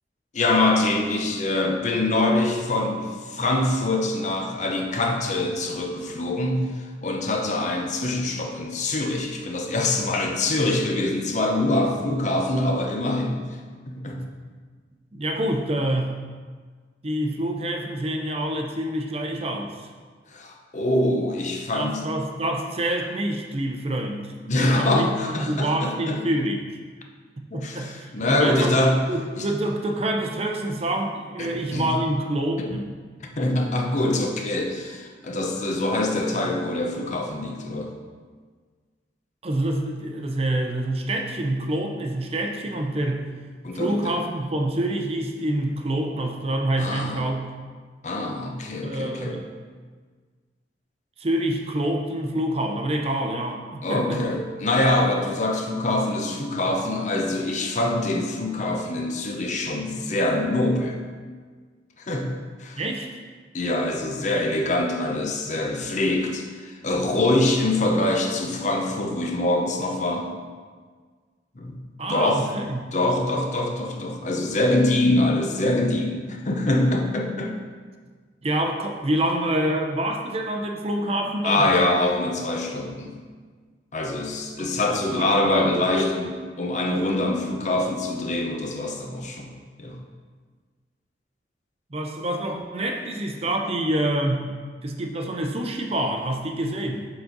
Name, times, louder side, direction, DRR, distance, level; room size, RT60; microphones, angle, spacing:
voice 1, 0.3-13.4 13.9-14.2 20.3-22.0 24.5-26.2 27.5-29.0 29.4-29.5 31.4-31.9 32.6-32.7 33.2-37.9 43.6-44.1 46.8-47.3 48.0-49.4 53.8-61.0 62.0-62.3 62.6-62.8 63.5-70.3 71.6-71.8 72.1-72.5 72.9-77.5 81.4-83.1 83.9-89.5 89.8-90.0, left 2 dB, 40° left, 2 dB, 0.7 m, -24 dB
voice 2, 15.1-16.1 17.0-19.8 21.7-26.7 27.5-28.7 29.1-32.9 39.4-43.3 43.7-47.4 48.8-49.5 51.2-54.2 62.8-63.2 72.0-72.9 78.4-81.6 84.6-84.7 85.2-86.1 91.9-94.5 94.8-97.1, right 1 dB, 35° right, 3 dB, 0.6 m, -27 dB
7.1 x 4.0 x 3.9 m, 1.5 s
head